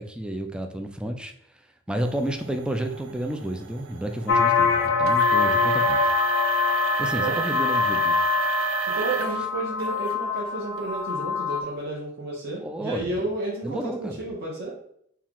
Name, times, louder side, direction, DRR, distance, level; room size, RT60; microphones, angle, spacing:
voice 1, 0.0-1.3 1.9-6.0 7.0-8.2 12.6-13.2 13.6-14.2, right 1 dB, 5° right, 5 dB, 0.3 m, -31 dB
sound 1, 2.0-9.4 9.8-10.2 10.8-10.9 11.6-11.7, right 6 dB, 85° right, 0.5 m, -30 dB
sound 2, 4.3-11.6, left 5 dB, 65° left, 0.4 m, -24 dB
voice 2, 8.9-14.8, right 2 dB, 55° right, -7 dB, 1.1 m, -31 dB
4.4 x 2.4 x 3.6 m, 0.70 s
head